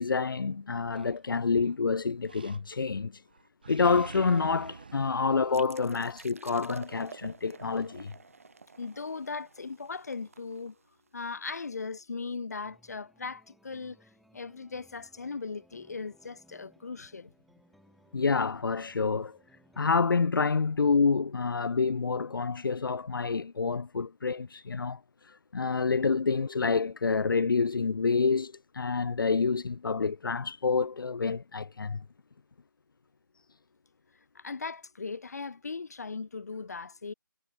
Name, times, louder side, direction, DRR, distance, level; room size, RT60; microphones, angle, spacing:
voice 1, 0.0-3.2 3.7-8.1 18.1-19.4 19.8-32.0, left 4 dB, 85° left, 0.5 m, -28 dB
Animal, 0.9-1.7 2.3-3.0 3.3-6.3, right 5 dB, 25° right, 0.5 m, -48 dB
sound 1, 5.5-11.1, right 5 dB, 40° right, 1.2 m, -50 dB
voice 2, 8.8-10.7 11.1-14.0 14.3-17.3 34.4-37.1, left 4 dB, 50° left, 1.4 m, -38 dB
sound 2, 12.6-20.3, right 1 dB, ahead, 3.9 m, -63 dB
figure-of-eight pair, 175°, 11 cm